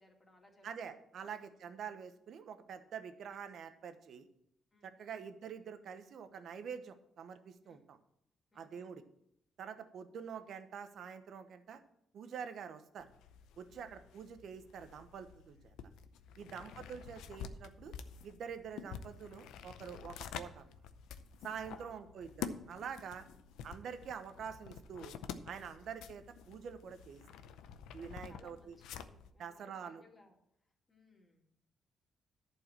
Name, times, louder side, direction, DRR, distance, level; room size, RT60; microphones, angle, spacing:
voice 1, 0.0-1.3 3.0-3.1 4.7-5.2 7.6-7.8 8.5-9.0 13.7-14.0 16.4-16.7 21.7-22.2 23.3-23.5 25.7-25.9 28.0-30.4 30.9-31.5, left 2 dB, 25° left, 0 dB, 2.6 m, -64 dB
voice 2, 0.6-4.3 4.8-8.0 8.5-9.0 9.6-11.8 12.1-13.1 13.6-15.7 16.4-17.9 18.2-20.7 21.4-23.2 23.6-25.2 25.5-27.2 27.9-28.8 29.4-30.0, right 7 dB, 65° right, 10 dB, 1.0 m, -46 dB
sound 1, 13.0-29.3, left 7 dB, 90° left, 0.6 m, -49 dB
11.0 x 4.7 x 7.5 m, 0.74 s
cardioid pair, 90°, 0 cm